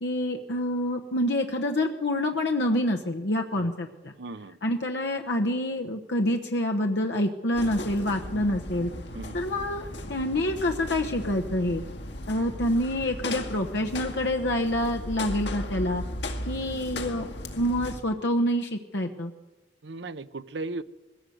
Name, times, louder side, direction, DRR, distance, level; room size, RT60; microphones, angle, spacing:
voice 1, 0.0-4.1 4.6-8.9 9.3-11.8 12.3-16.0 16.4-19.3, left 1 dB, 70° left, 3 dB, 1.1 m, -27 dB
voice 2, 4.2-4.6 8.3-8.4 9.1-9.4 16.6-16.8 19.8-20.8, right 3 dB, 80° right, 12 dB, 0.7 m, -37 dB
sound 1, 7.5-18.0, left 1 dB, 90° left, 2.1 m, -36 dB
21.0 x 16.0 x 7.9 m, 1.2 s
head